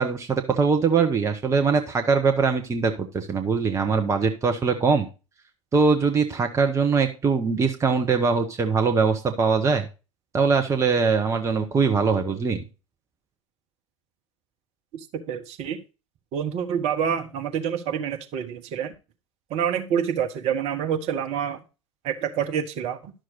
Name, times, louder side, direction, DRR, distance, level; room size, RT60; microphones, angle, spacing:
voice 1, 0.0-5.1 5.7-9.8 10.3-12.6, right 5 dB, 20° right, 5 dB, 1.0 m, -22 dB
voice 2, 15.1-15.8 16.3-18.9 19.5-21.6 22.0-23.1, right 8 dB, 40° right, 6 dB, 1.3 m, -27 dB
11.5 x 6.3 x 4.0 m, 0.31 s
figure-of-eight pair, 80°, 16 cm